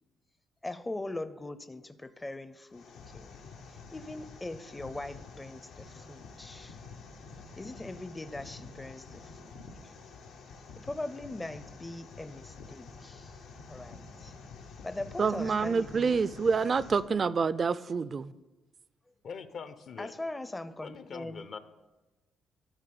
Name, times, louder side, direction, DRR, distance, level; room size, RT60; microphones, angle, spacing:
voice 1, 0.6-2.8 3.1-3.3 3.9-5.6 5.9-6.8 7.6-9.6 10.8-13.3 13.7-14.3 14.8-16.2 20.0-21.4, left 2 dB, 15° left, 12 dB, 0.5 m, -40 dB
sound 1, 2.7-17.0, left 4 dB, 90° left, 1.1 m, -49 dB
voice 2, 15.2-18.3, right 5 dB, 40° right, 17 dB, 0.3 m, -27 dB
voice 3, 19.2-20.1 20.8-21.6, left 6 dB, 60° left, 12 dB, 0.6 m, -42 dB
12.0 x 4.1 x 6.8 m, 1.1 s
cardioid pair, 90°, 0 cm